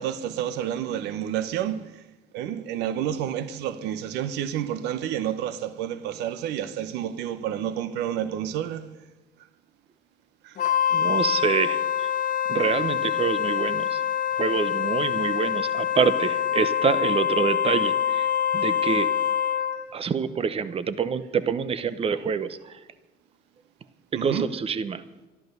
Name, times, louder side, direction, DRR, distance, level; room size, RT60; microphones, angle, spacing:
voice 1, 0.0-2.0 2.3-8.9 10.4-10.6 24.1-24.5, right 10 dB, 90° right, 0.9 m, -30 dB
Wind instrument woodwind instrument, 10.6-19.9, left 9 dB, 55° left, 1.2 m, -25 dB
voice 2, 10.9-12.1 12.5-14.0 14.4-19.1 19.9-22.6 24.1-25.0, right 6 dB, 35° right, 0.9 m, -26 dB
13.5 x 12.0 x 6.6 m
cardioid pair, 110°, 17 cm